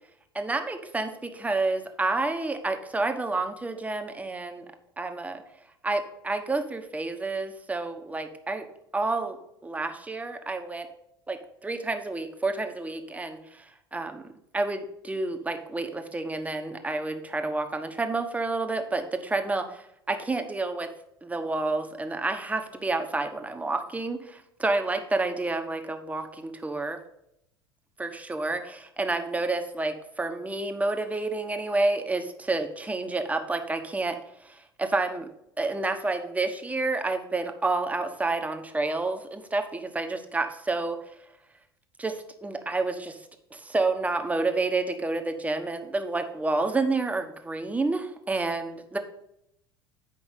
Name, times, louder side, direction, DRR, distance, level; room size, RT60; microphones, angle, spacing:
voice 1, 0.3-4.6 5.0-5.4 5.8-8.7 8.9-9.4 9.6-10.9 11.3-14.2 14.5-20.9 21.2-27.0 28.0-34.2 34.4-35.3 35.6-41.0 42.0-43.2 43.5-49.0, right 3 dB, 10° right, 6 dB, 1.1 m, -29 dB
8.3 x 5.2 x 5.2 m, 0.79 s
figure-of-eight pair, 75°, 13 cm